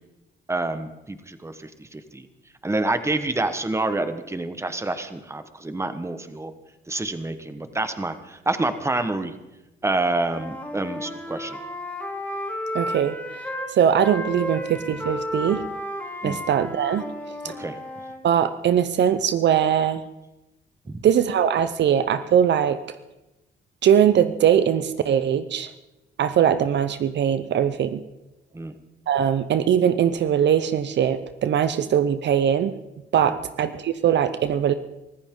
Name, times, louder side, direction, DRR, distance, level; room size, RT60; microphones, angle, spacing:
voice 1, 0.5-2.3 2.6-6.5 6.9-9.3 9.8-11.6 16.2-16.4 17.4-17.8 20.9-21.0 28.5-28.8 33.2-33.4, right 2 dB, 15° right, 9 dB, 1.3 m, -28 dB
Wind instrument woodwind instrument, 10.1-13.7 14.0-18.2, left 1 dB, 5° left, 4.2 m, -33 dB
voice 2, 12.7-13.2 13.7-15.6 16.2-17.0 17.4-17.5 18.2-20.0 21.0-22.8 23.8-25.7 26.2-28.0 29.1-32.7 33.1-34.7, right 9 dB, 65° right, 12 dB, 0.8 m, -21 dB
24.0 x 14.5 x 3.9 m, 0.99 s
cardioid pair, 90°, 20 cm